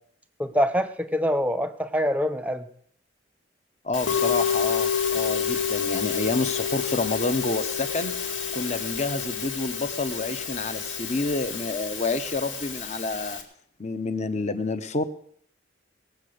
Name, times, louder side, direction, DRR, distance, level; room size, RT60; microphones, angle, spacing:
voice 1, 0.4-2.7, equal, 10° right, 11 dB, 0.8 m, -25 dB
voice 2, 3.8-8.1 8.5-13.4 13.8-15.0, left 3 dB, 35° left, 10 dB, 0.9 m, -29 dB
Musical instrument, 3.9-13.4, left 7 dB, 85° left, 2.3 m, -29 dB
19.5 x 7.7 x 6.5 m, 0.63 s
head